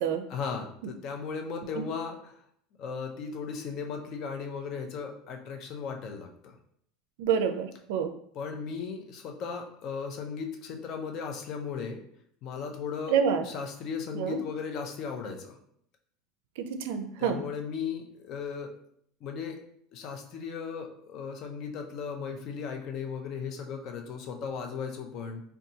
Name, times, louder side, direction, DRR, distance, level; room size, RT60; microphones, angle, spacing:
voice 1, 0.3-2.4 2.8-6.5 8.3-12.0 12.4-13.2 13.4-15.5 17.2-18.7 19.2-19.6 19.9-25.4, left 6 dB, 40° left, 3 dB, 0.5 m, -36 dB
voice 2, 7.2-8.1 13.1-13.4 14.1-14.4 16.6-17.4, right 7 dB, 75° right, 8 dB, 0.4 m, -27 dB
3.9 x 2.3 x 2.7 m, 0.66 s
cardioid pair, 165°, 0 cm